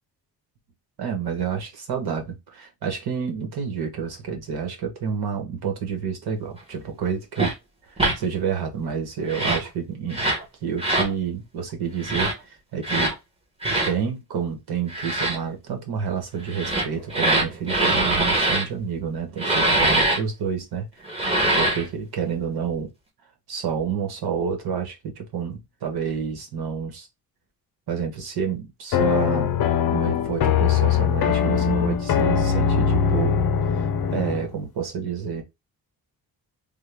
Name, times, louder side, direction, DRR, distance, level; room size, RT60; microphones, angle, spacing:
voice 1, 1.0-7.5 7.9-10.2 10.6-13.1 13.8-21.1 21.6-22.9 23.5-27.1 27.9-29.5 29.9-33.4 33.7-35.4, right 7 dB, 75° right, 1.4 m, -29 dB
sound 1, 7.4-7.5 8.0-8.2 9.2-9.7 10.1-10.4 10.8-11.1 12.0-12.3 12.8-13.1 13.6-13.9 14.9-15.4 16.5-18.6 19.4-20.2 21.1-21.9, right 2 dB, 15° right, 1.2 m, -22 dB
sound 2, 28.9-34.5, left 8 dB, 70° left, 0.7 m, -21 dB
3.6 x 2.3 x 3.5 m
wide cardioid pair, 155°, 38 cm